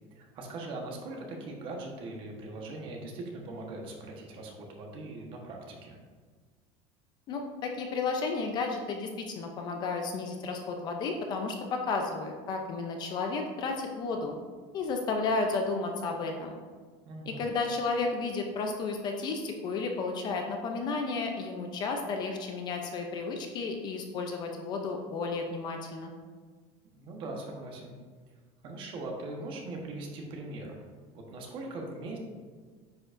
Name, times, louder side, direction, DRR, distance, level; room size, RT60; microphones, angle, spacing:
voice 1, 0.1-6.0 17.1-17.5 26.9-28.0 28.6-30.7 31.1-32.2, right 2 dB, 35° right, 0 dB, 1.1 m, -40 dB
voice 2, 7.3-14.4 14.7-16.5 17.3-26.1, left 4 dB, 30° left, 3 dB, 0.5 m, -32 dB
9.4 x 4.9 x 2.5 m, 1.5 s
cardioid pair, 180°, 14 cm